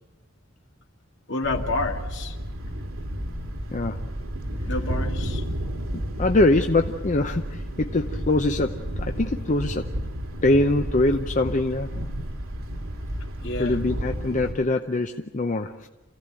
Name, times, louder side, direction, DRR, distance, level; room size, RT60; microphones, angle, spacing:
voice 1, 1.3-2.3 4.7-5.4 13.4-13.8, left 2 dB, 60° left, 3 dB, 2.2 m, -29 dB
Thunder, 1.4-14.5, equal, 90° right, 2.4 m, -31 dB
voice 2, 3.7-4.0 5.9-10.0 10.4-11.9 13.6-15.9, left 2 dB, 35° left, 6 dB, 0.7 m, -23 dB
28.0 x 16.0 x 8.9 m, 1.1 s
head